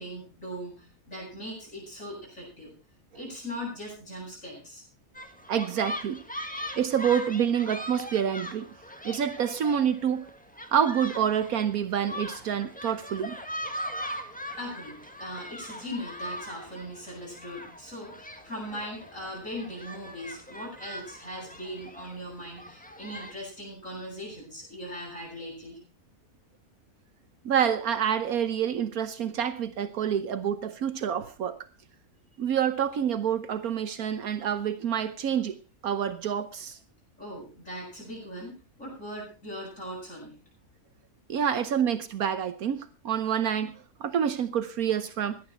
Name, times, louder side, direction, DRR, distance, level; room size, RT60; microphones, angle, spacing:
voice 1, 0.0-2.7 3.1-4.8 14.6-25.8 37.2-40.4, equal, 60° left, 8.7 m, -39 dB
sound 1, 5.1-23.3, equal, 5° left, 1.7 m, -40 dB
voice 2, 5.5-6.2 6.8-8.7 9.0-10.3 10.7-13.4 27.4-31.6 32.4-35.6 35.8-36.8 41.3-45.4, right 8 dB, 75° right, 1.4 m, -27 dB
18.0 x 11.5 x 4.4 m
omnidirectional pair, 1.6 m